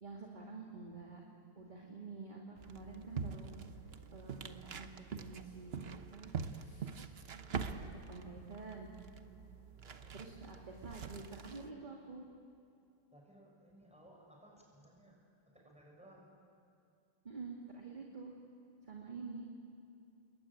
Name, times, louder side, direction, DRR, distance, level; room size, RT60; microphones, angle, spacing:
voice 1, 0.0-1.2 1.6-3.5 4.1-7.3 7.6-8.9 10.1-12.3 17.2-18.4 18.8-19.4, right 4 dB, 20° right, -1 dB, 2.4 m, -49 dB
sound 1, 2.6-11.7, right 6 dB, 70° right, 0.5 m, -45 dB
voice 2, 9.8-10.9 13.1-15.2 15.5-16.3, right 1 dB, 5° right, -2 dB, 6.5 m, -61 dB
29.0 x 21.5 x 9.0 m, 2.5 s
omnidirectional pair, 2.4 m